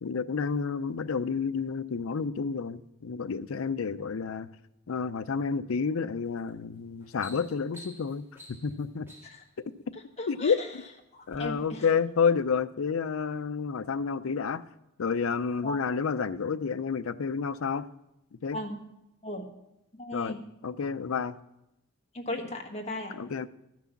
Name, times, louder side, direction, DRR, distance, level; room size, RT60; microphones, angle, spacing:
voice 1, 0.0-4.5 4.9-9.1 10.3-10.6 11.3-14.6 15.0-17.9 18.4-18.6 20.1-20.4 20.6-21.3 23.1-23.5, left 5 dB, 80° left, 13 dB, 0.5 m, -30 dB
sound 1, 6.3-6.5 6.9-9.5 10.3-10.8 11.2-11.4, equal, 10° right, 2.5 m, -51 dB
voice 2, 9.9-10.7 11.1-11.8 15.6-15.8 18.5-18.8 19.2-19.4 19.9-20.4 22.1-23.2, left 1 dB, 30° left, 1 dB, 1.3 m, -37 dB
13.0 x 6.1 x 7.0 m, 0.87 s
head